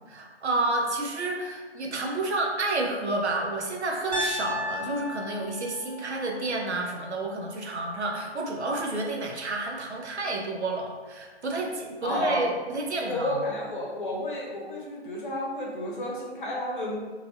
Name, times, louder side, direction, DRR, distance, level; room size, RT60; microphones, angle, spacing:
voice 1, 0.1-13.4, right 2 dB, 85° right, 0 dB, 0.7 m, -30 dB
Piano, 4.1-8.2, left 2 dB, 45° right, 0.6 m, -36 dB
voice 2, 12.0-12.5 13.1-17.0, left 1 dB, 50° left, -2 dB, 0.8 m, -31 dB
3.1 x 2.6 x 2.4 m, 1.4 s
figure-of-eight pair, 140°, 33 cm